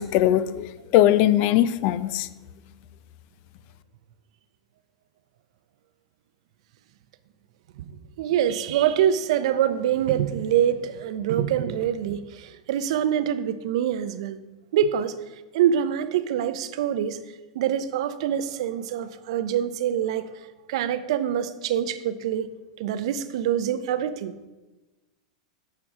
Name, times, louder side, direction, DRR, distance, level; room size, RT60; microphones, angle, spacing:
voice 1, 0.0-2.3, left 12 dB, 50° left, 14 dB, 0.4 m, -20 dB
voice 2, 8.2-14.4 14.7-15.1 15.5-17.2 17.5-20.3 20.7-22.5 22.8-24.3, right 10 dB, 65° right, 13 dB, 0.5 m, -25 dB
9.8 x 4.7 x 3.6 m, 1.1 s
hypercardioid pair, 110°, 3 cm